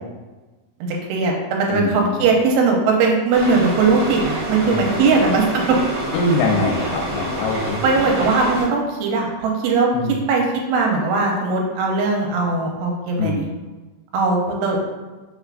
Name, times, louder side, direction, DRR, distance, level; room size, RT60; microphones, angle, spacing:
voice 1, 0.9-5.8 7.8-9.9 10.3-13.4 14.1-14.8, right 4 dB, 85° right, 0 dB, 2.6 m, -19 dB
voice 2, 1.7-2.2 4.7-4.8 5.1-5.4 6.1-8.1 9.9-10.2 13.2-13.4, left 2 dB, 85° left, -1 dB, 2.6 m, -23 dB
sound 1, 3.3-8.6, right 1 dB, 65° right, 1.4 m, -27 dB
5.6 x 3.4 x 2.4 m, 1.2 s
omnidirectional pair, 4.5 m